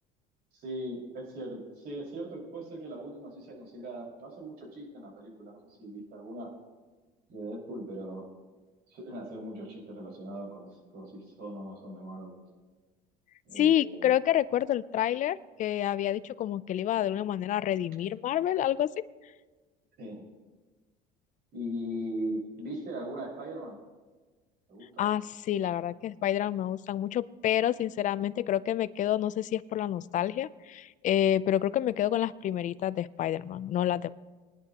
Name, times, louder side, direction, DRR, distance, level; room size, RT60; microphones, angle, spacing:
voice 1, 0.5-6.5 7.3-8.3 8.9-12.4 13.5-14.1 20.0-20.3 21.5-23.8 24.7-25.1, right 1 dB, 60° right, -1 dB, 5.3 m, -39 dB
voice 2, 13.6-18.9 25.0-34.1, left 11 dB, 40° left, 17 dB, 0.4 m, -28 dB
22.5 x 10.5 x 2.9 m, 1.3 s
cardioid pair, 120°, 19 cm